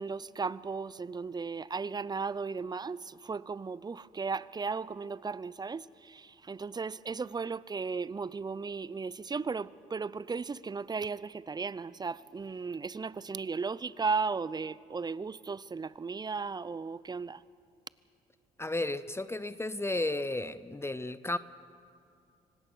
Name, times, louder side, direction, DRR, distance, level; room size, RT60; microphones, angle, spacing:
voice 1, 0.0-17.4, right 4 dB, 25° right, 0.6 m, -36 dB
voice 2, 18.6-21.4, left 2 dB, 15° left, 0.6 m, -33 dB
25.0 x 18.0 x 6.3 m
supercardioid pair, 60°, 16 cm